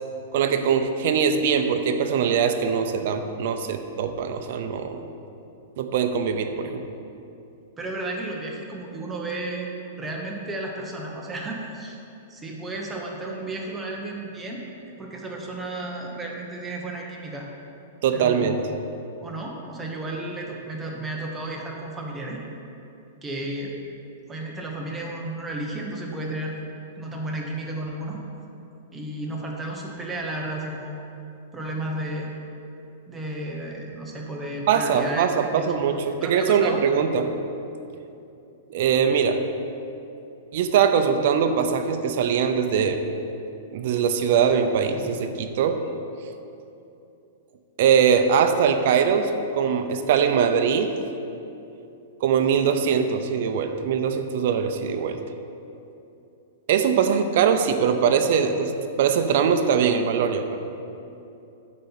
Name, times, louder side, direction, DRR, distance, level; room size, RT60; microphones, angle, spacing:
voice 1, 0.3-5.0 5.8-6.9 18.0-18.6 34.7-37.3 38.7-39.4 40.5-43.0 43.7-45.8 47.8-50.9 52.2-55.2 56.7-60.6, right 7 dB, 50° right, 7 dB, 0.6 m, -22 dB
voice 2, 7.8-9.7 10.0-12.0 12.3-14.7 15.0-17.5 18.1-18.6 19.2-22.4 23.2-23.8 24.3-26.6 27.0-28.2 28.9-31.0 31.5-32.3 33.1-35.7 36.2-36.8, right 1 dB, 10° right, -2 dB, 0.9 m, -33 dB
9.4 x 4.3 x 7.2 m, 2.8 s
supercardioid pair, 170°, 0 cm